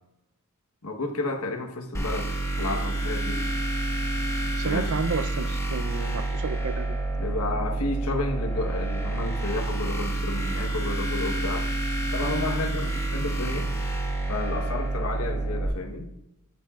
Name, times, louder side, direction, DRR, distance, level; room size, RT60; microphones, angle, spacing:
voice 1, 0.8-3.4 4.6-4.9 7.2-11.7 12.1-13.7 14.3-16.1, left 2 dB, 75° left, 5 dB, 1.3 m, -31 dB
sound 1, 1.9-15.7, right 2 dB, 15° left, 1.6 m, -28 dB
voice 2, 4.5-7.0, right 4 dB, 75° right, 11 dB, 0.6 m, -31 dB
13.0 x 11.5 x 2.5 m, 0.89 s
head